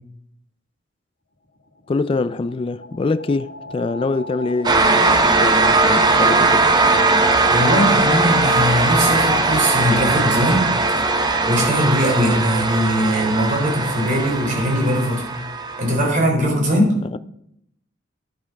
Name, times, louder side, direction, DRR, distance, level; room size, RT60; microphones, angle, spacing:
sound 1, 1.3-9.1, left 2 dB, 80° left, 2.1 m, -38 dB
voice 1, 1.9-6.7 17.1-17.2, left 3 dB, 30° left, 0.3 m, -24 dB
sound 2, 4.6-16.1, right 3 dB, 20° right, 0.9 m, -19 dB
voice 2, 7.5-10.7 11.0-11.1 11.5-15.3 15.8-16.9, equal, 45° right, 3.6 m, -20 dB
11.0 x 7.4 x 5.2 m
head